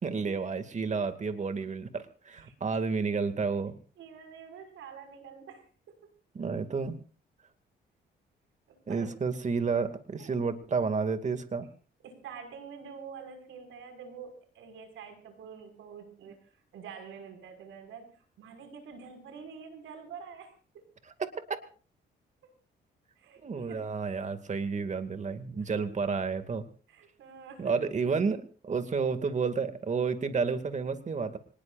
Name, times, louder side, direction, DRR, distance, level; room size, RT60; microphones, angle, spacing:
voice 1, 0.0-3.8 6.3-7.0 8.9-11.7 21.2-21.6 23.4-26.6 27.6-31.4, right 5 dB, 35° right, 9 dB, 2.4 m, -31 dB
voice 2, 4.0-6.0 8.7-9.1 9.7-9.8 10.2-10.3 12.0-20.5 22.4-22.5 23.2-23.8 25.5-25.7 26.9-27.8, right 6 dB, 80° right, 6 dB, 6.0 m, -47 dB
25.5 x 20.0 x 2.6 m, 0.39 s
cardioid pair, 90°, 20 cm